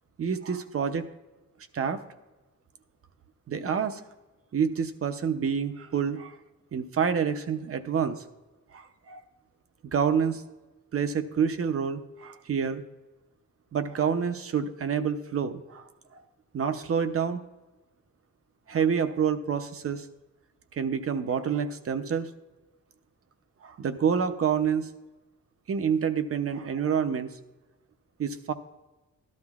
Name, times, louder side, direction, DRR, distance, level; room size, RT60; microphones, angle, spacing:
voice 1, 0.2-1.1 1.7-2.0 3.5-4.0 4.5-6.4 6.7-8.2 8.7-9.2 9.8-10.4 10.9-12.8 13.7-16.2 16.5-17.4 18.7-20.1 20.7-22.3 23.6-24.9 25.7-27.3 28.2-28.5, right 7 dB, 45° right, 9 dB, 0.6 m, -28 dB
13.0 x 11.5 x 2.4 m, 1.1 s
wide cardioid pair, 140°, 31 cm